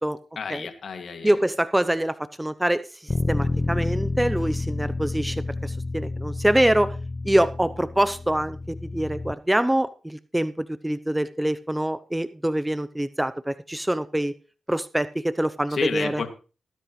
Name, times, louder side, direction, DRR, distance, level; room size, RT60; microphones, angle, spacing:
voice 1, 0.4-1.3 15.7-16.3, left 5 dB, 65° left, 6 dB, 2.2 m, -30 dB
voice 2, 1.2-6.9 7.2-14.3 14.7-16.2, right 1 dB, 10° right, 12 dB, 0.7 m, -25 dB
Bass guitar, 3.1-9.3, left 2 dB, 30° left, 0.7 m, -29 dB
18.5 x 10.0 x 3.2 m, 0.35 s
supercardioid pair, 55°, 0 cm